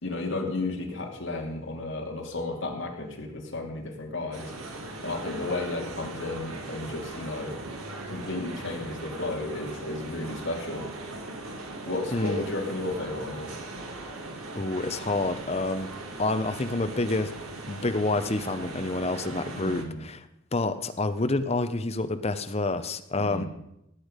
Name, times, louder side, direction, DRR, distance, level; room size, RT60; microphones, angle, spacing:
voice 1, 0.0-4.5 5.0-7.5 8.0-10.8 11.8-13.6 19.5-20.0 23.2-23.5, left 2 dB, 60° left, 1 dB, 2.5 m, -33 dB
sound 1, 4.3-19.8, right 2 dB, 85° right, 1.9 m, -39 dB
voice 2, 12.1-12.4 14.5-15.9 16.2-17.3 17.7-20.3 20.5-23.5, left 2 dB, 30° left, 9 dB, 0.7 m, -28 dB
18.0 x 8.2 x 5.2 m, 0.83 s
head